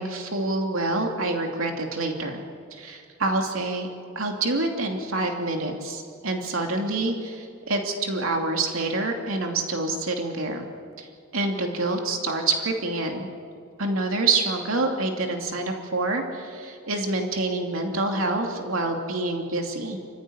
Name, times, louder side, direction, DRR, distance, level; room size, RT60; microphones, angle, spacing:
voice 1, 0.0-2.4 2.7-3.9 4.1-10.6 11.0-11.1 11.3-13.3 13.8-20.0, right 2 dB, 80° right, 2 dB, 2.9 m, -27 dB
27.5 x 15.5 x 9.9 m, 2.3 s
head